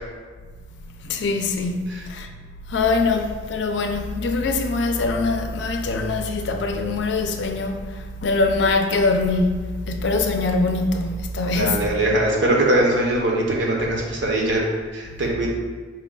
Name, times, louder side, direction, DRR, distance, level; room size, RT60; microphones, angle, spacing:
voice 1, 1.0-2.3 2.7-11.9, left 3 dB, 65° left, 0.4 m, -23 dB
voice 2, 11.5-14.6 14.9-15.5, right 1 dB, 70° right, 0.8 m, -21 dB
4.5 x 2.3 x 3.7 m
head